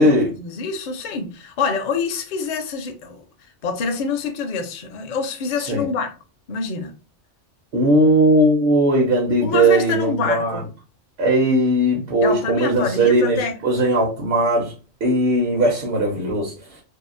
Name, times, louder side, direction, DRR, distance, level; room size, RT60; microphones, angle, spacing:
voice 1, 0.0-3.2 3.6-6.2 6.5-6.9 9.4-10.7 12.2-13.5, left 5 dB, 55° left, 0.6 m, -26 dB
voice 2, 7.7-10.6 11.2-14.7 15.0-16.5, right 1 dB, 60° right, 0.9 m, -18 dB
2.7 x 2.3 x 2.5 m
omnidirectional pair, 1.2 m